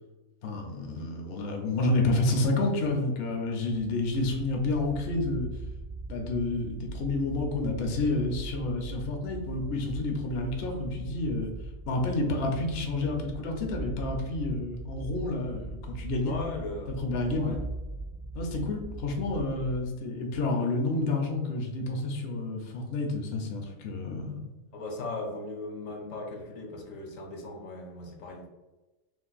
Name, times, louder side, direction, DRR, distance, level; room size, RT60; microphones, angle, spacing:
voice 1, 0.4-5.5 6.1-11.5 11.9-16.3 17.0-17.6 18.3-24.4, left 2 dB, 60° left, 2 dB, 0.7 m, -29 dB
sound 1, 4.0-19.9, right 2 dB, 35° right, 0.3 m, -40 dB
voice 2, 16.2-16.9 17.4-17.6 24.7-28.5, left 2 dB, 75° left, 1 dB, 1.1 m, -38 dB
2.6 x 2.5 x 3.8 m, 1.1 s
omnidirectional pair, 1.4 m